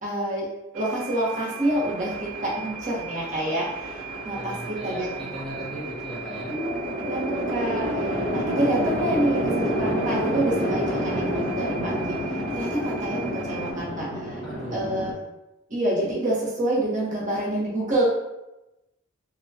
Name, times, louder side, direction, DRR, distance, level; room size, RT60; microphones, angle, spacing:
voice 1, 0.0-0.5 0.7-5.3 6.5-6.7 7.1-14.4 14.7-15.2 15.7-18.0, right 1 dB, 40° right, -5 dB, 0.8 m, -27 dB
sound 1, 0.7-13.7, right 6 dB, 80° right, 0.4 m, -38 dB
Chatter / Traffic noise roadway noise / Train, 1.7-15.1, equal, 55° left, 1.3 m, -30 dB
voice 2, 4.4-6.6 14.4-15.1, right 1 dB, ahead, -8 dB, 0.5 m, -38 dB
3.1 x 2.1 x 2.6 m, 0.98 s
head